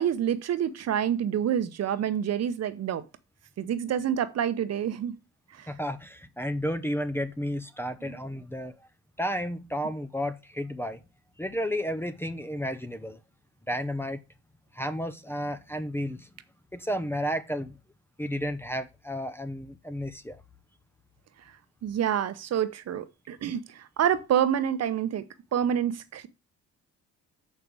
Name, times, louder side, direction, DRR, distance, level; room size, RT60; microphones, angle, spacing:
voice 1, 0.0-3.0 3.6-5.1 5.5-5.7 8.0-8.2 21.8-25.2 25.5-26.3, right 9 dB, 55° right, 0.9 m, -27 dB
voice 2, 5.7-8.7 9.2-11.0 11.4-13.2 13.7-14.2 14.7-16.3 16.7-17.7 18.2-20.4, equal, 5° left, 0.7 m, -32 dB
6.6 x 5.5 x 6.2 m
cardioid pair, 105°, 31 cm